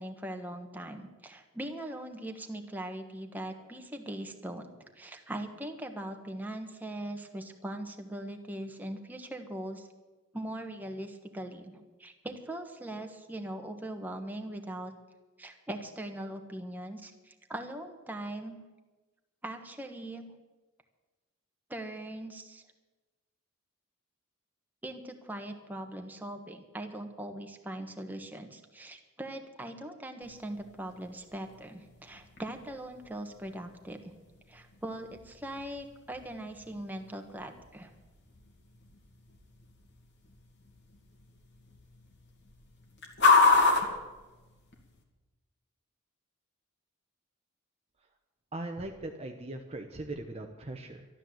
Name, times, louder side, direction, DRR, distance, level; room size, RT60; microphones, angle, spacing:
voice 1, 0.0-4.7 5.0-9.9 10.3-14.9 15.4-18.7 19.4-20.3 21.7-22.6 24.8-34.1 34.5-37.9, right 1 dB, 10° right, 4 dB, 1.2 m, -40 dB
sound 1, 30.2-45.0, left 3 dB, 50° left, 2.3 m, -32 dB
voice 2, 48.5-51.1, right 2 dB, 30° right, 4 dB, 0.8 m, -39 dB
13.0 x 12.0 x 7.8 m, 1.2 s
head